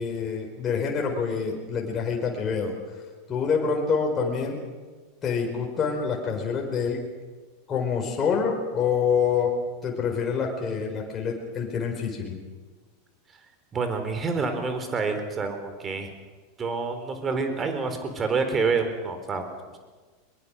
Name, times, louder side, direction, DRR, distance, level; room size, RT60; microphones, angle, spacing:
voice 1, 0.0-2.7 3.3-4.6 5.2-7.0 7.7-9.5 9.8-12.4, left 6 dB, 30° left, 0 dB, 4.9 m, -26 dB
voice 2, 13.7-16.1 16.6-19.5, right 4 dB, 25° right, 7 dB, 4.1 m, -27 dB
22.5 x 22.0 x 6.6 m, 1.4 s
figure-of-eight pair, 90°, 0 cm